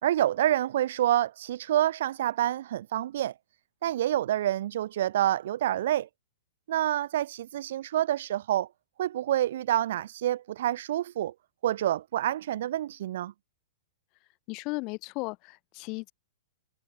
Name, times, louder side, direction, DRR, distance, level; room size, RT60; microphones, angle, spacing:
voice 1, 0.0-3.3 3.8-6.1 6.7-8.7 9.0-11.3 11.6-13.3, right 12 dB, 55° right, 1.7 m, -27 dB
voice 2, 14.5-16.1, left 27 dB, 30° left, 1.7 m, -35 dB
hypercardioid pair, 165°, 0 cm